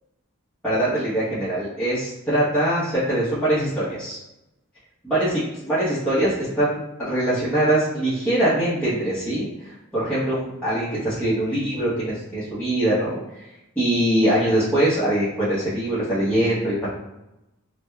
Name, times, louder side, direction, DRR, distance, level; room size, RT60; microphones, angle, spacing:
voice 1, 0.6-4.2 5.0-16.9, right 1 dB, 5° left, -14 dB, 1.0 m, -23 dB
4.8 x 2.2 x 2.3 m, 0.94 s
head